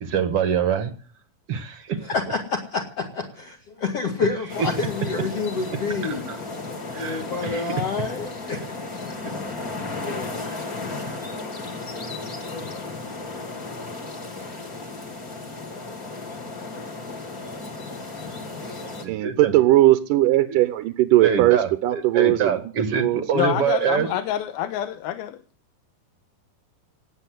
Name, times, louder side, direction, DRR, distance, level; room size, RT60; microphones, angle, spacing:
voice 1, 0.0-0.9 1.5-2.0 4.6-4.7 6.0-6.4 6.9-7.6 9.2-9.3 10.5-10.6 18.6-18.7 19.0-19.5 20.5-20.6 21.2-24.1, right 7 dB, 55° right, 9 dB, 1.8 m, -25 dB
voice 2, 2.0-6.6 6.9-8.7 9.9-10.6 11.4-12.7, left 4 dB, 45° left, 1 dB, 2.7 m, -29 dB
sound 1, 4.5-19.0, left 3 dB, 25° left, 2.4 m, -34 dB
voice 3, 19.1-22.6 22.9-23.2, right 15 dB, 70° right, 10 dB, 2.3 m, -19 dB
voice 4, 23.3-25.4, left 12 dB, 80° left, 9 dB, 2.7 m, -27 dB
18.0 x 8.8 x 7.9 m, 0.42 s
omnidirectional pair, 4.4 m